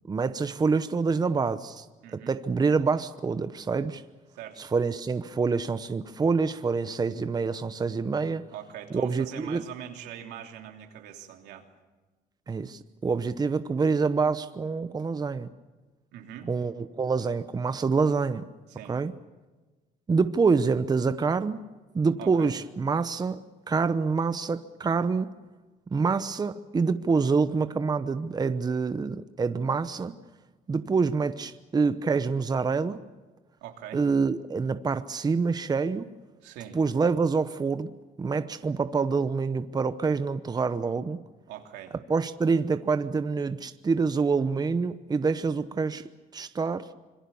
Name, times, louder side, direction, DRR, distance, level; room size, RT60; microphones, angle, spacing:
voice 1, 0.0-1.8 2.1-4.0 4.6-8.5 9.0-9.6 12.5-15.5 16.5-18.4 18.9-19.1 20.1-21.6 21.9-25.4 25.9-30.2 30.7-33.0 33.9-36.1 36.7-37.9 38.2-41.2 42.1-46.0 46.3-46.9, right 4 dB, 25° right, 11 dB, 0.9 m, -26 dB
voice 2, 2.0-2.4 4.3-4.7 8.5-11.6 16.1-16.5 18.7-19.0 22.2-22.5 33.6-34.0 36.4-36.8 41.5-42.0, right 10 dB, 90° right, 3 dB, 3.1 m, -42 dB
26.5 x 22.5 x 7.1 m, 1.2 s
cardioid pair, 110°, 17 cm